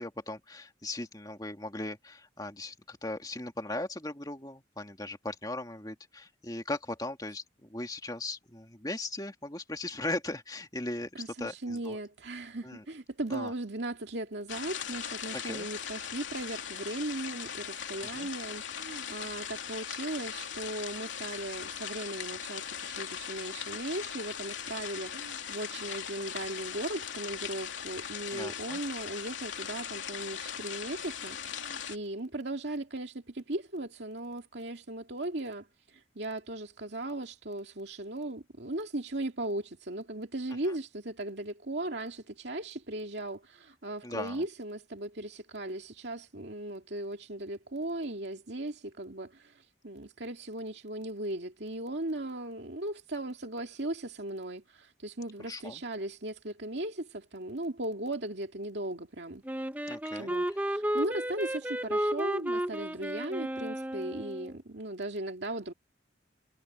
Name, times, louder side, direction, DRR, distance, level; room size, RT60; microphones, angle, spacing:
voice 1, 0.0-12.0 12.6-12.8 13.3-13.5 15.3-15.7 18.1-18.3 28.3-28.8 44.0-44.4 55.4-55.8 59.9-60.6, left 2 dB, 20° left, 2.4 m, -38 dB
voice 2, 11.2-59.4 60.1-65.7, right 1 dB, 60° right, 2.3 m, -37 dB
sound 1, 14.5-32.0, left 8 dB, 80° left, 2.9 m, -39 dB
Wind instrument woodwind instrument, 59.4-64.5, equal, 10° right, 1.0 m, -33 dB
head